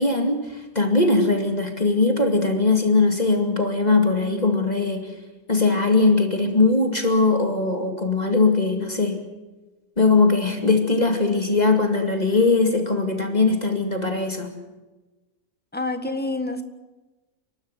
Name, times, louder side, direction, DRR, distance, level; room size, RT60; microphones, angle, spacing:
voice 1, 0.0-5.1 5.5-9.2 10.0-14.5, left 3 dB, 25° left, 4 dB, 2.4 m, -20 dB
voice 2, 15.7-16.6, left 2 dB, 5° left, 8 dB, 1.4 m, -27 dB
29.5 x 12.0 x 9.8 m, 1.1 s
omnidirectional pair, 1.7 m